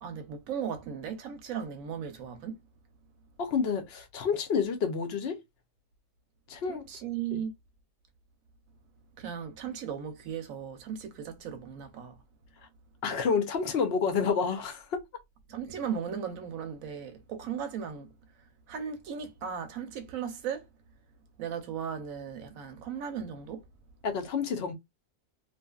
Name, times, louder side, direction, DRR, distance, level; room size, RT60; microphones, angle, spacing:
voice 1, 0.0-2.6 6.7-7.5 9.2-12.2 15.5-18.1 18.7-20.7 21.4-23.6, right 7 dB, 85° right, 1.0 m, -37 dB
voice 2, 3.4-5.4 6.5-6.8 7.3-7.4 13.0-15.0 24.0-24.7, left 6 dB, 60° left, 0.7 m, -29 dB
2.7 x 2.4 x 2.3 m
omnidirectional pair, 1.4 m